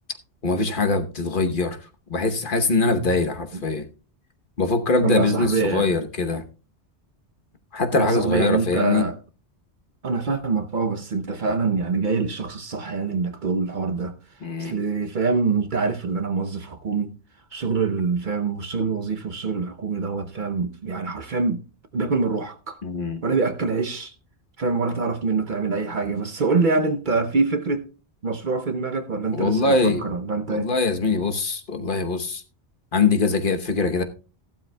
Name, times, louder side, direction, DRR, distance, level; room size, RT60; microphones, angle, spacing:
voice 1, 0.4-1.8 2.1-3.9 4.6-6.4 7.7-9.0 14.4-14.7 22.8-23.2 29.3-30.0 30.5-32.4 32.9-34.0, left 3 dB, 50° left, 1.2 m, -22 dB
voice 2, 5.0-6.0 7.9-9.2 10.0-14.2 14.6-17.1 17.5-21.6 21.9-22.8 23.2-24.1 24.6-27.9 28.2-30.7, right 4 dB, 50° right, 0.8 m, -25 dB
15.0 x 12.0 x 2.2 m
omnidirectional pair, 1.1 m